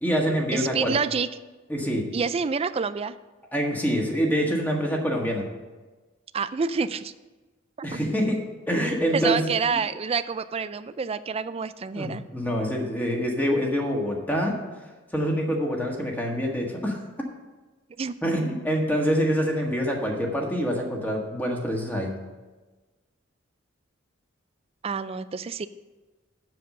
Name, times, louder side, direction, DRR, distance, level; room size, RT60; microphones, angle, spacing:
voice 1, 0.0-1.0 1.7-2.1 3.5-5.5 7.8-8.4 8.7-9.4 9.7-9.8 11.9-14.6 15.1-17.0 18.2-22.1, equal, 10° left, 0 dB, 1.5 m, -26 dB
voice 2, 0.5-1.3 2.1-3.2 6.3-7.1 7.8-8.0 9.1-12.2 18.0-18.1 24.8-25.7, right 5 dB, 30° right, 14 dB, 0.3 m, -27 dB
7.8 x 7.1 x 6.5 m, 1.2 s
head